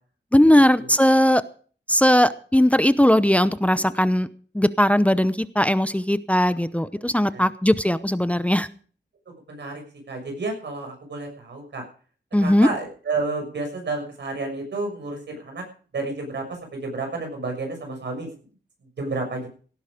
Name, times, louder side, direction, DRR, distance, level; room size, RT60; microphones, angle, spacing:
voice 1, 0.3-1.4 1.9-4.3 4.5-8.7 12.3-12.7, left 1 dB, 5° left, 13 dB, 0.7 m, -19 dB
voice 2, 9.5-9.8 10.1-11.8 12.4-15.6 15.9-18.3 19.0-19.5, right 3 dB, 85° right, 3 dB, 6.4 m, -31 dB
17.0 x 10.5 x 5.1 m, 0.42 s
wide cardioid pair, 80°, 18 cm